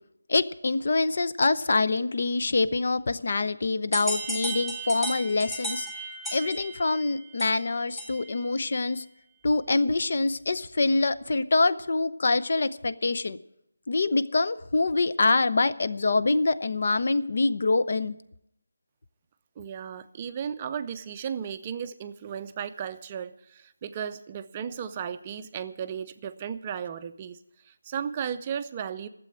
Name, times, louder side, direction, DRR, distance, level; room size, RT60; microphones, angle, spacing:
voice 1, 0.3-5.9 6.3-9.1 9.4-13.4 13.9-18.1, left 3 dB, 50° left, 13 dB, 0.6 m, -25 dB
sound 1, 3.9-8.4, right 2 dB, 5° left, 1.5 m, -35 dB
voice 2, 19.6-27.4 27.7-29.1, right 8 dB, 20° right, 9 dB, 0.5 m, -35 dB
12.0 x 7.6 x 9.9 m, 0.78 s
figure-of-eight pair, 165°, 0 cm